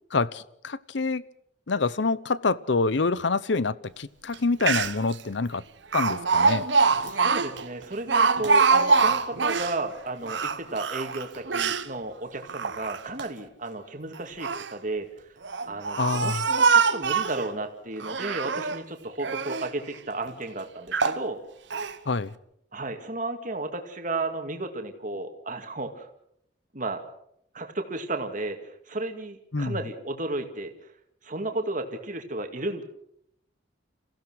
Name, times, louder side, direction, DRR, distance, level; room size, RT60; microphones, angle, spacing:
voice 1, 0.1-1.2 1.7-5.6 5.9-6.6 16.0-16.4 22.1-22.3 29.5-29.8, left 3 dB, 65° left, 18 dB, 0.8 m, -26 dB
Speech, 4.3-4.4 4.6-5.1 5.9-9.8 10.2-11.9 12.4-13.2 14.2-14.7 15.4-17.5 18.0-18.8 19.2-19.7 20.3-20.4 20.9-21.2 21.7-21.9, right 5 dB, 65° right, 1.0 m, -24 dB
voice 2, 7.0-15.1 15.7-21.4 22.7-26.1 26.7-27.0 27.5-30.7 31.2-32.8, right 2 dB, 45° right, 5 dB, 2.2 m, -33 dB
27.5 x 15.5 x 6.4 m, 0.74 s
head